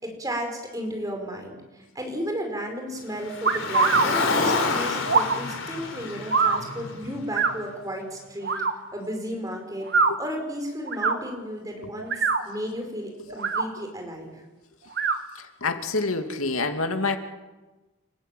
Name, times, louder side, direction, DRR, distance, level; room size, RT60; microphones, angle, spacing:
voice 1, 0.0-1.6 2.0-8.6 8.9-9.9 10.2-12.2 12.5-14.3, equal, 15° right, 3 dB, 5.2 m, -33 dB
Car, 3.2-7.6, left 3 dB, 70° left, 3.9 m, -28 dB
sound 1, 3.4-4.1 5.1-5.4 6.3-6.6 7.3-7.5 8.4-8.7 9.8-10.1 10.9-11.2 12.0-12.4 13.3-13.7 14.9-15.2, right 4 dB, 50° right, 1.6 m, -22 dB
voice 2, 15.4-17.2, left 3 dB, 90° left, 6 dB, 2.6 m, -27 dB
29.5 x 14.5 x 9.3 m, 1.1 s
head